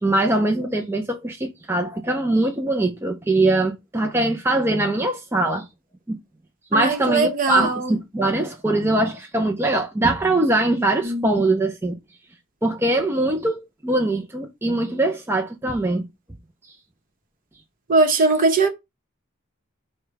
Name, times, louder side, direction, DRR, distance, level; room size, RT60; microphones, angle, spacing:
voice 1, 0.0-5.7 6.1-6.2 6.7-12.0 12.6-16.0, right 2 dB, 10° right, 0.4 m, -22 dB
voice 2, 6.7-8.0 11.0-11.4 17.9-18.7, right 3 dB, 40° right, 0.9 m, -20 dB
4.8 x 2.2 x 4.7 m
head